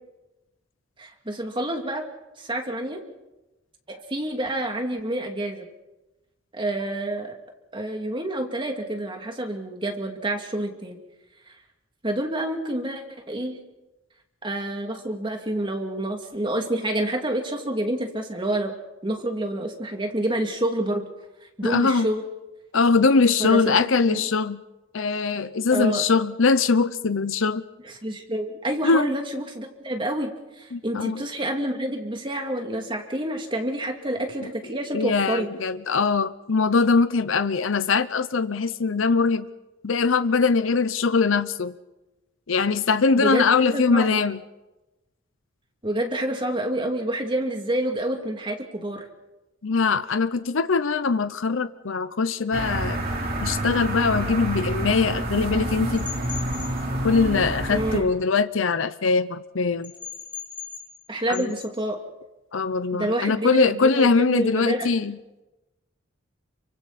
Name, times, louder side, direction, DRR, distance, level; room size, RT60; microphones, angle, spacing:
voice 1, 1.0-2.1 2.4-3.0 3.9-5.7 6.5-7.4 7.7-11.0 12.0-13.6 14.4-18.7 19.0-21.1 21.6-22.2 23.4-23.7 24.1-24.2 25.7-26.1 28.0-30.3 30.6-35.5 43.1-44.2 45.8-49.0 57.7-58.1 61.1-62.0 62.9-64.9, right 1 dB, 25° right, 3 dB, 2.6 m, -28 dB
voice 2, 21.6-22.1 22.7-24.6 24.9-27.6 28.8-29.1 30.7-31.2 34.4-34.5 34.9-39.5 39.8-41.7 42.5-44.4 49.6-53.0 53.4-56.1 57.0-59.9 61.3-61.5 62.5-65.2, left 4 dB, 70° left, 13 dB, 0.7 m, -22 dB
sound 1, 52.5-58.0, right 1 dB, 45° right, 4.4 m, -28 dB
sound 2, 55.9-56.7 59.8-61.1 61.3-61.7, left 8 dB, 25° left, 5.5 m, -38 dB
29.5 x 24.5 x 4.2 m, 1.0 s
head